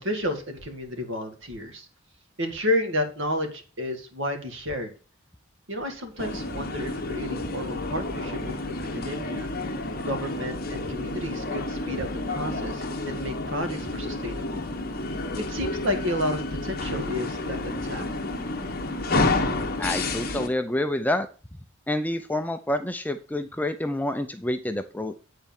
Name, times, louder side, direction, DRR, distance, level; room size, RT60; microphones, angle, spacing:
voice 1, 0.0-1.9 2.4-4.9 5.7-9.5 10.0-14.6 15.4-18.0, left 1 dB, 60° right, 6 dB, 2.0 m, -31 dB
sound 1, 6.2-20.5, left 2 dB, 45° left, 1.3 m, -30 dB
voice 2, 19.8-21.3 21.9-25.2, left 1 dB, 10° left, 9 dB, 0.4 m, -28 dB
9.5 x 4.4 x 7.2 m, 0.37 s
head